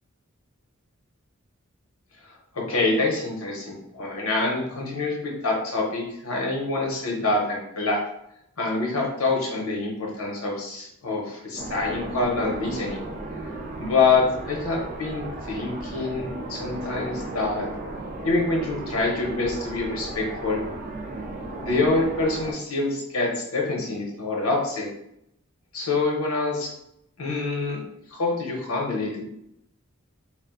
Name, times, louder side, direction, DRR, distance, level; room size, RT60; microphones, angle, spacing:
voice 1, 2.5-8.0 8.6-13.0 13.8-17.7 18.2-20.6 21.6-24.9 25.7-26.7 27.2-27.8 28.1-29.2, left 3 dB, 85° left, -1 dB, 0.8 m, -26 dB
sound 1, 11.6-22.5, right 2 dB, 40° right, 0.4 m, -35 dB
2.4 x 2.1 x 3.7 m, 0.80 s
head